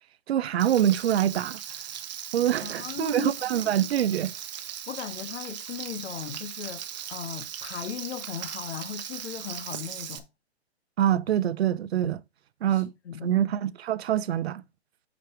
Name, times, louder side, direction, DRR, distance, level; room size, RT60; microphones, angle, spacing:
voice 1, 0.3-1.6 2.3-4.3 11.0-12.2 12.6-12.9 13.2-14.6, right 11 dB, 65° right, 0.6 m, -25 dB
Frying (food), 0.6-10.2, right 10 dB, 40° right, 0.8 m, -38 dB
voice 2, 2.6-3.5 4.9-6.8 7.1-10.3 12.7-13.4, left 8 dB, 70° left, 0.8 m, -37 dB
5.8 x 5.2 x 4.6 m
hypercardioid pair, 160°, 34 cm